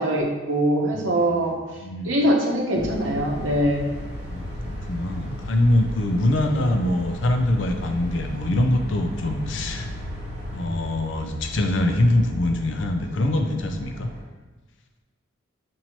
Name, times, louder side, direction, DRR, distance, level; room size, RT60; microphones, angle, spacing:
voice 1, 0.0-1.6 2.0-3.9, right 1 dB, 75° right, 0 dB, 0.8 m, -22 dB
voice 2, 0.9-2.2 4.3-9.9 10.5-14.1, left 1 dB, 70° left, 5 dB, 0.5 m, -24 dB
sound 1, 2.7-14.2, equal, 30° right, 1.3 m, -35 dB
5.7 x 2.7 x 3.0 m, 1.3 s
head